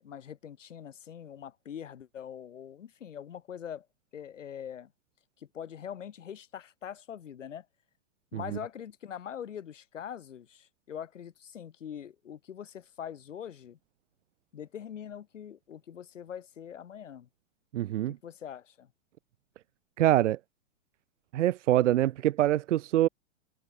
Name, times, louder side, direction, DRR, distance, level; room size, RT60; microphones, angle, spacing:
voice 1, 0.0-3.9 4.1-4.9 5.4-7.7 8.3-13.8 14.5-17.3 18.1-18.9, left 9 dB, 90° left, 2.8 m, -43 dB
voice 2, 17.7-18.2 20.0-20.4 21.3-23.1, right 13 dB, 80° right, 0.8 m, -24 dB
hypercardioid pair, 135°, 36 cm